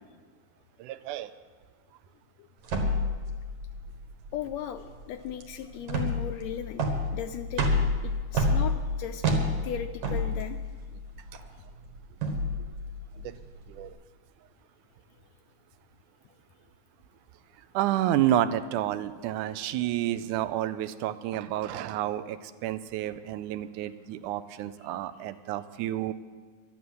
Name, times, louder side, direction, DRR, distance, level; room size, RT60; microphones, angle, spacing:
voice 1, 0.8-1.3 13.2-13.4 13.7-14.0 17.7-26.1, right 12 dB, 85° right, 13 dB, 2.1 m, -30 dB
sound 1, 2.6-13.9, left 1 dB, 70° right, 2.9 m, -30 dB
voice 2, 4.3-6.8 7.1-7.6 8.0-9.4 9.6-10.6, left 9 dB, 80° left, 9 dB, 1.6 m, -37 dB
12.0 x 8.6 x 9.4 m, 1.5 s
omnidirectional pair, 3.5 m